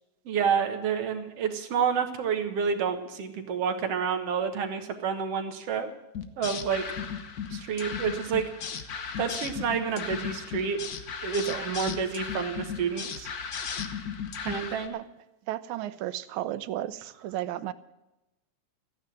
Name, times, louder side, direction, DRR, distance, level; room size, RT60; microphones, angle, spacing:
voice 1, 0.3-5.9 6.4-6.9 7.5-8.5 9.2-10.8 11.2-13.3 14.4-15.0, right 6 dB, 60° right, 7 dB, 2.2 m, -29 dB
sound 1, 6.1-14.9, left 6 dB, 70° left, 0.9 m, -36 dB
voice 2, 15.5-17.7, right 13 dB, 85° right, 14 dB, 2.1 m, -34 dB
15.0 x 9.9 x 8.9 m, 0.97 s
omnidirectional pair, 3.3 m